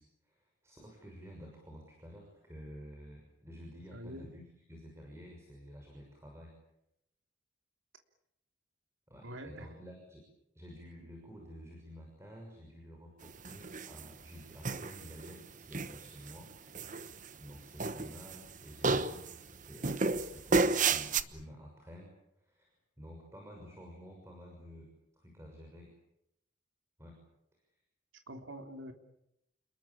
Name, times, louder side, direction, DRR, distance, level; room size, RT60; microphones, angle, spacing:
voice 1, 0.0-4.4 4.7-6.5 9.1-10.2 10.5-16.8 17.4-22.1 22.4-25.9 27.0-27.2, equal, 15° right, 1 dB, 6.3 m, -51 dB
voice 2, 3.9-4.3 9.2-9.7 28.3-28.9, equal, 80° right, 4 dB, 3.2 m, -45 dB
sound 1, 13.4-14.1 14.6-15.3 15.7-16.3 16.7-17.5 17.8-18.5 18.8-19.3 19.8-21.2, right 3 dB, 40° right, 1.1 m, -31 dB
30.0 x 21.0 x 8.7 m, 0.82 s
head